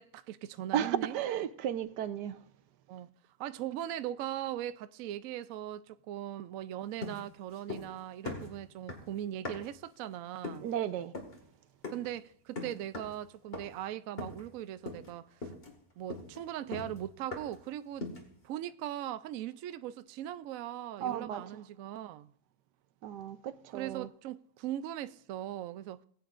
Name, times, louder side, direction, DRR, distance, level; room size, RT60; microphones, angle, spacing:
voice 1, 0.0-1.2 2.9-3.1 3.4-10.7 11.9-15.5 16.0-18.1 18.4-22.3 23.7-26.0, right 12 dB, 70° right, 0.8 m, -39 dB
voice 2, 0.7-2.4 10.6-11.1 21.0-21.4 23.0-24.1, right 10 dB, 85° right, 1.3 m, -34 dB
sound 1, 7.0-8.0 8.2-9.8 10.4-10.7 11.1-11.4 11.8-12.1 12.6-13.2 13.5-13.8 14.2-14.6 14.9-15.1 15.4-17.7 18.0-18.4, left 3 dB, 35° left, 2.0 m, -42 dB
19.5 x 8.6 x 2.5 m
omnidirectional pair, 1.8 m